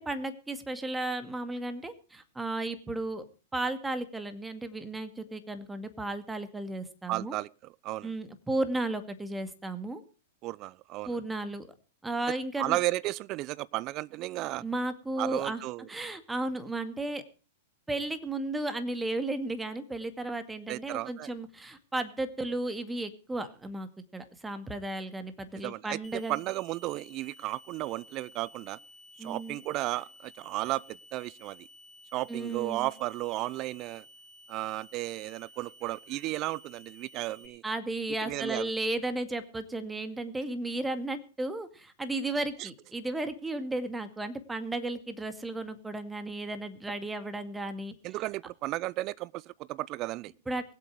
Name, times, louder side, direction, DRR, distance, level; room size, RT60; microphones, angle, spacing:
voice 1, 0.0-3.2 3.5-7.4 8.0-10.0 11.1-11.7 12.0-12.8 14.5-15.6 15.9-17.2 17.9-26.4 29.2-29.6 32.3-32.9 37.6-47.9 50.5-50.7, right 2 dB, 10° right, 2.1 m, -34 dB
voice 2, 7.1-8.1 10.4-11.2 12.6-14.6 15.2-15.9 20.7-21.3 25.6-28.8 29.2-31.7 32.1-34.0 34.5-37.6 38.2-38.7 42.6-42.7 48.0-50.3, right 18 dB, 40° right, 0.6 m, -34 dB
sound 1, 26.0-37.5, equal, 20° left, 3.1 m, -54 dB
23.0 x 8.2 x 4.8 m
hypercardioid pair, 110°, 0 cm